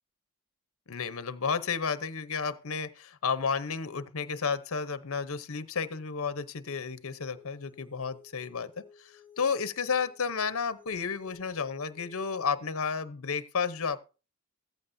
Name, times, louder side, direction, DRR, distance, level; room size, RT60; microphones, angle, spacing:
voice 1, 0.9-14.0, left 5 dB, 65° left, 0.8 m, -32 dB
sound 1, 7.3-12.5, left 7 dB, 5° right, 3.7 m, -56 dB
14.5 x 14.5 x 2.7 m
head